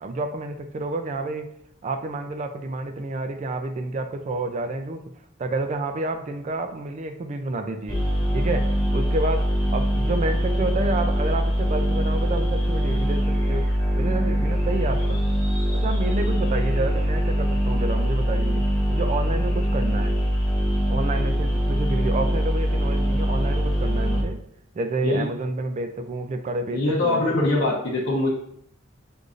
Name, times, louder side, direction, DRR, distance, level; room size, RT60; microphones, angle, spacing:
voice 1, 0.0-1.5 1.8-5.0 5.4-8.0 8.3-9.5 9.7-13.7 14.0-15.2 15.7-20.2 20.9-24.4 24.8-27.2, right 2 dB, 35° right, 7 dB, 0.3 m, -29 dB
sound 1, 7.9-24.2, equal, 20° left, 1.0 m, -23 dB
voice 2, 26.7-28.3, left 2 dB, 60° left, -6 dB, 0.8 m, -23 dB
6.4 x 2.6 x 2.4 m, 0.70 s
head